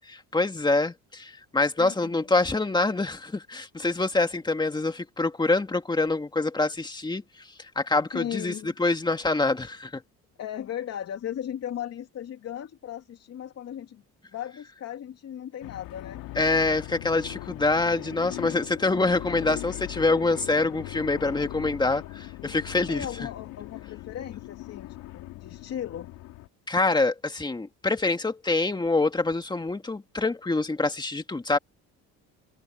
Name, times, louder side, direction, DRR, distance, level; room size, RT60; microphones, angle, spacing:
voice 1, 0.0-7.2 7.8-8.5 8.8-10.0 16.4-23.1 26.7-31.6, left 3 dB, 15° left, 2.1 m, -25 dB
voice 2, 1.8-2.3 8.1-8.7 10.4-14.0 14.3-16.5 18.8-19.2 22.7-26.1, left 10 dB, 50° left, 2.8 m, -37 dB
sound 1, 15.6-26.5, left 17 dB, 85° left, 2.5 m, -40 dB
cardioid pair, 125°, 33 cm